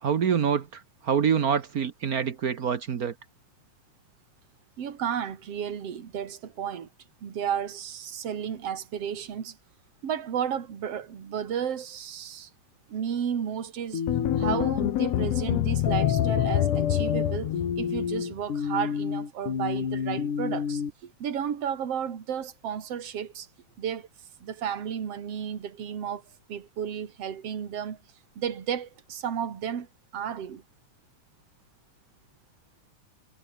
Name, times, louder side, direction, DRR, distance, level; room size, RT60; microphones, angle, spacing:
voice 1, 0.0-3.1, right 7 dB, 85° right, 0.8 m, -26 dB
voice 2, 4.8-6.9 7.2-9.6 10.0-12.5 12.9-14.0 14.4-23.5 23.8-24.1 24.4-26.2 26.5-28.0 28.4-29.9 30.1-30.6, right 8 dB, 50° right, 3.2 m, -33 dB
sound 1, 13.9-14.7 15.9-20.9, left 6 dB, 80° left, 4.9 m, -30 dB
sound 2, 14.1-18.3, left 13 dB, 65° left, 1.9 m, -26 dB
omnidirectional pair, 3.6 m